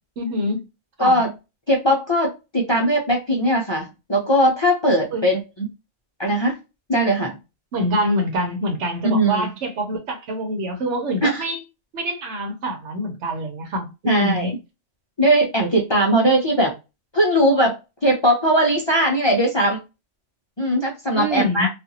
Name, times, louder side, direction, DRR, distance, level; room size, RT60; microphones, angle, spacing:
voice 1, 0.2-0.6 1.0-1.2 5.1-5.2 7.7-11.6 11.9-14.5 21.2-21.7, equal, 75° right, 1.1 m, -25 dB
voice 2, 1.0-1.3 1.7-5.7 6.2-6.6 6.9-7.3 9.1-9.5 11.2-11.4 14.0-14.5 15.2-16.7 17.1-19.8 20.6-21.7, right 1 dB, 35° left, 0.5 m, -19 dB
2.5 x 2.5 x 2.7 m
omnidirectional pair, 1.2 m